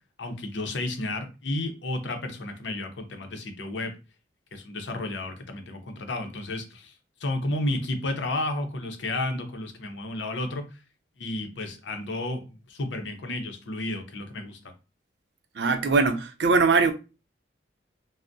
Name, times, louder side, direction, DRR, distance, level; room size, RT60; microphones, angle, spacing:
voice 1, 0.2-3.9 4.5-6.9 7.2-10.6 11.2-14.6, left 2 dB, 80° left, 0.6 m, -32 dB
voice 2, 15.6-16.9, right 4 dB, 65° right, 0.4 m, -21 dB
3.4 x 2.0 x 2.6 m
head